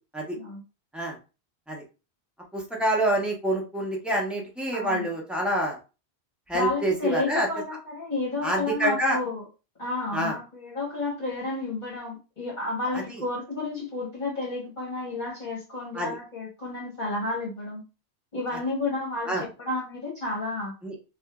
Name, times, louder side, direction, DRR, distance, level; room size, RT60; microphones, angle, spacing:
voice 1, 2.5-5.8 6.5-7.5 8.4-9.2 10.1-10.3 15.9-16.1 19.3-19.4 20.8-21.0, right 1 dB, ahead, -2 dB, 0.7 m, -26 dB
voice 2, 4.7-5.1 6.5-9.4 9.8-17.8 18.3-20.7, left 3 dB, 45° left, -5 dB, 1.2 m, -31 dB
3.3 x 2.5 x 2.3 m, 0.31 s
omnidirectional pair, 1.1 m